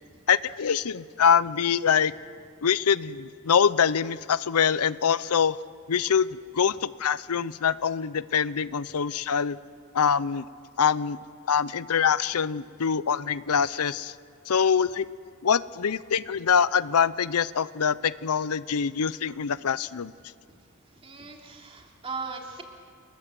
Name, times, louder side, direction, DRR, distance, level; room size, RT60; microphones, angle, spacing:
voice 1, 0.3-2.1 2.6-5.6 5.9-6.3 6.5-9.6 9.9-10.5 10.8-11.2 11.5-14.1 14.5-15.1 15.4-20.1, left 7 dB, 90° left, 17 dB, 0.6 m, -24 dB
voice 2, 21.0-22.6, right 4 dB, 25° right, 1 dB, 2.9 m, -38 dB
29.0 x 21.0 x 7.6 m, 2.1 s
head